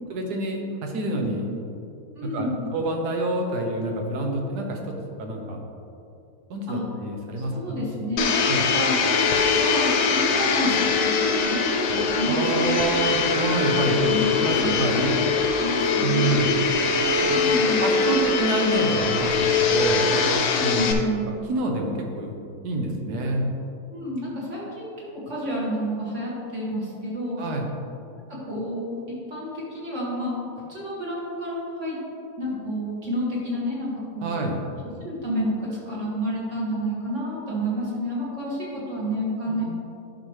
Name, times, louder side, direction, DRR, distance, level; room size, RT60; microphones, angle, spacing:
voice 1, 0.1-1.5 2.2-5.6 6.5-7.8 8.4-8.7 12.3-14.1 14.4-15.2 16.0-16.5 17.2-17.5 17.8-20.2 20.6-20.9 21.5-22.3 22.6-23.5 27.4-27.7 34.2-34.6 39.5-39.6, right 2 dB, 75° right, 2 dB, 1.5 m, -27 dB
voice 2, 2.2-2.6 6.7-6.8 7.4-13.1 14.0-15.2 15.6-16.3 17.3-17.9 20.0-20.2 20.5-21.3 23.9-27.4 28.4-29.0 29.3-32.0 32.4-34.3 35.0-39.6, equal, 45° right, -7 dB, 2.5 m, -30 dB
Domestic sounds home sounds, 8.2-20.9, left 4 dB, 80° left, 1.3 m, -22 dB
10.5 x 6.2 x 3.2 m, 2.6 s
omnidirectional pair, 1.8 m